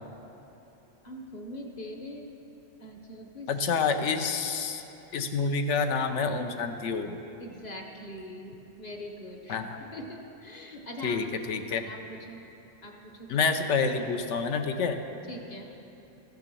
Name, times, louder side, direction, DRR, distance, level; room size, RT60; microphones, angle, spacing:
voice 1, 1.0-2.3 2.8-3.8 5.1-5.3 7.4-9.6 9.9-12.4 12.8-13.3 15.3-15.7, left 1 dB, 35° left, 1 dB, 1.0 m, -42 dB
voice 2, 3.5-4.8 5.1-7.2 9.5-9.8 11.0-11.8 13.3-15.0, left 5 dB, 70° left, 7 dB, 1.0 m, -28 dB
14.0 x 6.0 x 6.8 m, 3.0 s
omnidirectional pair, 1.3 m